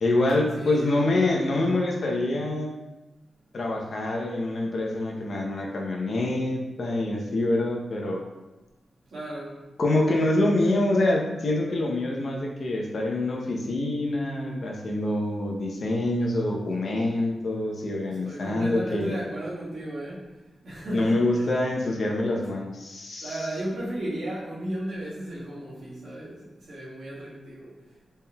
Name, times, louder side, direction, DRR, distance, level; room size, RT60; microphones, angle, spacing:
voice 1, 0.0-2.7 3.5-8.2 9.8-19.2 20.9-23.4, left 2 dB, 65° left, -1 dB, 0.7 m, -26 dB
voice 2, 0.5-0.9 9.1-9.5 18.1-20.2 20.6-21.5 23.2-26.4 26.7-27.7, right 1 dB, 80° right, -8 dB, 1.5 m, -34 dB
4.2 x 3.6 x 2.2 m, 1.1 s
cardioid pair, 50°, 0 cm